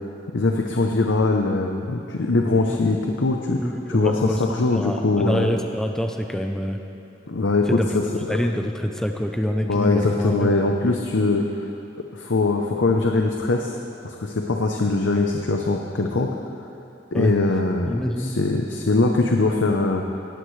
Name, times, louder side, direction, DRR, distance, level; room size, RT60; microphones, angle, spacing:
voice 1, 0.3-3.6 3.9-5.5 7.3-8.0 8.3-8.4 9.7-11.4 12.1-13.8 14.0-16.3 17.1-20.2, left 3 dB, 85° left, 2 dB, 0.8 m, -22 dB
voice 2, 3.6-4.4 4.7-6.8 7.7-8.0 8.3-10.6 17.1-17.3 17.8-18.4, equal, 5° left, 4 dB, 0.6 m, -25 dB
18.0 x 14.0 x 3.3 m, 2.9 s
head